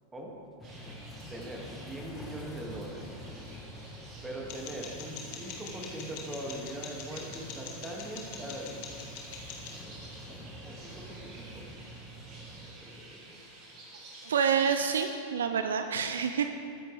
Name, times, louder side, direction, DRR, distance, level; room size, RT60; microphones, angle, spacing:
sound 1, 0.6-12.7, equal, 15° left, 1.4 m, -47 dB
sound 2, 0.6-15.1, right 2 dB, 35° right, 3.4 m, -51 dB
voice 1, 1.3-3.1 4.2-8.8 10.6-11.6 12.7-13.4, right 1 dB, 10° right, -1 dB, 2.3 m, -41 dB
sound 3, 4.5-9.8, left 6 dB, 45° left, 1.8 m, -45 dB
voice 2, 14.2-16.5, right 7 dB, 65° right, 7 dB, 0.6 m, -28 dB
21.5 x 10.0 x 3.5 m, 2.4 s
figure-of-eight pair, 90°, 0 cm